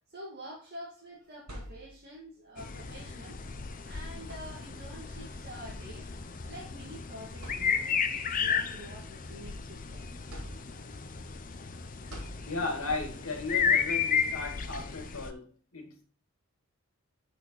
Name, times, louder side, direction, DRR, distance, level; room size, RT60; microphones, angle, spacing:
voice 1, 0.0-6.1 6.4-10.1 10.8-11.0, equal, 45° right, 2.0 m, -47 dB
sound 1, 1.1-2.3 3.5-3.7 4.2-5.0 6.1-6.3 6.8-6.9 7.4-8.2 8.7-9.7 10.3-11.1 12.1-13.0, equal, 85° right, 3.7 m, -46 dB
sound 2, 2.6-15.3, left 6 dB, 35° left, 0.6 m, -33 dB
voice 2, 12.5-16.0, left 3 dB, 70° left, 2.3 m, -36 dB
6.4 x 6.2 x 4.0 m
head